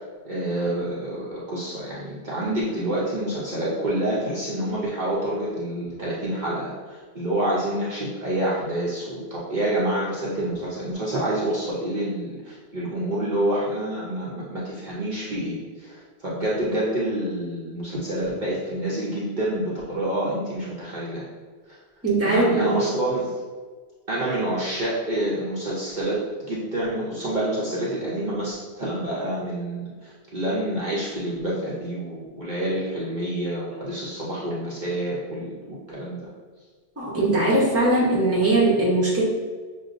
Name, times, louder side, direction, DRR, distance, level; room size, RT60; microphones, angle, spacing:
voice 1, 0.2-21.2 21.7-21.8 22.2-23.4 24.1-36.3, right 1 dB, 45° right, -7 dB, 0.8 m, -28 dB
voice 2, 22.0-22.8 37.0-39.2, right 2 dB, 15° right, -5 dB, 0.8 m, -20 dB
6.3 x 2.3 x 2.5 m, 1.5 s
omnidirectional pair, 1.2 m